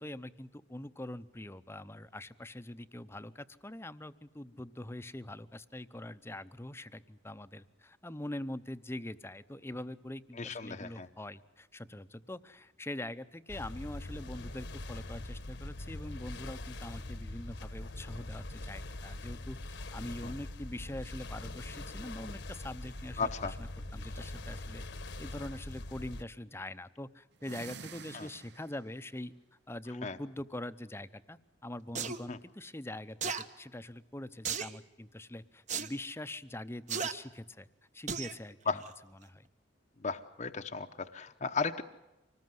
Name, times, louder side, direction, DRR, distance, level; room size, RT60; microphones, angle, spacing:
voice 1, 0.0-24.8 25.2-29.3 29.7-37.7 37.9-38.8 39.2-39.5, left 1 dB, 15° left, 12 dB, 0.7 m, -43 dB
voice 2, 10.3-11.1 20.2-20.3 23.2-23.5 28.1-28.3 30.0-30.2 32.3-32.4 38.7-38.8 40.0-41.8, left 4 dB, 40° left, 6 dB, 0.8 m, -35 dB
sound 1, 13.5-26.2, left 2 dB, 65° left, 1.3 m, -43 dB
sound 2, 27.3-29.0, right 5 dB, 60° right, 0.8 m, -49 dB
sound 3, 32.0-32.2 33.2-33.4 34.5-34.8 35.7-35.9 36.9-37.1 38.1-38.4 38.8-38.9, right 6 dB, 40° right, 1.1 m, -34 dB
25.5 x 19.5 x 7.8 m, 1.0 s
head